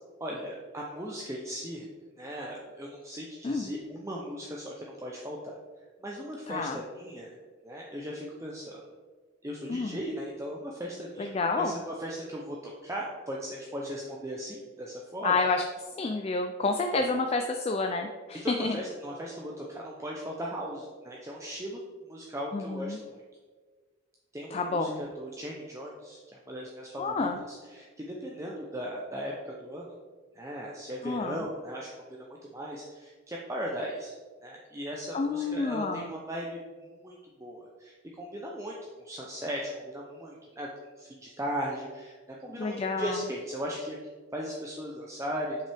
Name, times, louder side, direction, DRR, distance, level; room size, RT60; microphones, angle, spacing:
voice 1, 0.2-1.9 2.2-5.6 6.0-7.4 7.6-8.8 9.4-11.3 11.6-15.3 16.9-17.0 18.3-21.8 22.1-23.2 24.3-29.9 30.3-32.3 32.5-34.1 34.4-37.1 37.4-38.8 39.0-40.7 41.0-45.7, equal, 15° right, -3 dB, 0.6 m, -37 dB
voice 2, 6.5-6.8 9.7-10.0 11.2-11.8 15.2-15.6 16.0-18.8 22.5-23.0 24.5-25.0 27.0-27.4 31.0-31.4 35.1-36.1 42.6-43.2, left 3 dB, 30° left, 5 dB, 0.3 m, -29 dB
7.4 x 5.7 x 3.4 m, 1.5 s
head